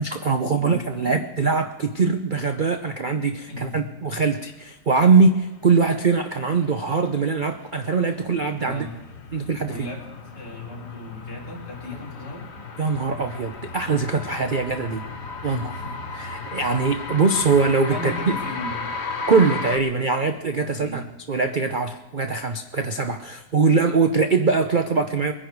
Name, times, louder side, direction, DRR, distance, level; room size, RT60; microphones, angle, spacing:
voice 1, 0.0-8.9 9.3-9.9 12.8-15.0 15.4-15.7 16.2-18.4 19.3-25.3, right 4 dB, 65° right, 6 dB, 0.5 m, -22 dB
voice 2, 0.5-1.2 3.5-3.8 8.6-8.9 9.7-10.1 10.3-12.5 15.5-16.3 16.6-16.7 17.9-18.9 20.8-21.0, left 2 dB, 65° left, -3 dB, 4.2 m, -36 dB
sound 1, 7.0-19.8, left 4 dB, 40° left, 1.3 m, -35 dB
22.5 x 10.0 x 4.7 m, 1.2 s
omnidirectional pair, 2.0 m